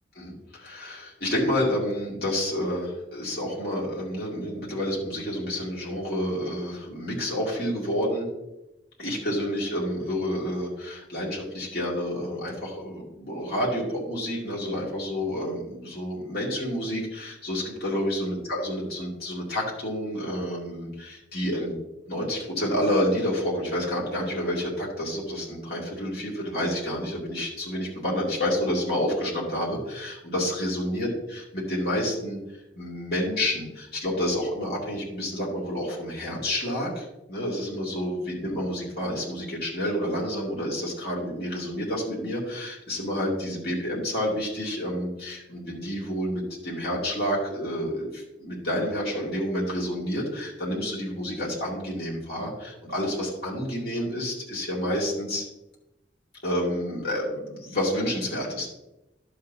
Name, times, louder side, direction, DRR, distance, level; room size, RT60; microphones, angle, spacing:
voice 1, 0.1-8.3 9.0-21.8 22.1-32.4 32.8-55.4 56.4-58.7, equal, 55° left, -5 dB, 2.3 m, -29 dB
11.5 x 6.7 x 2.8 m, 0.94 s
head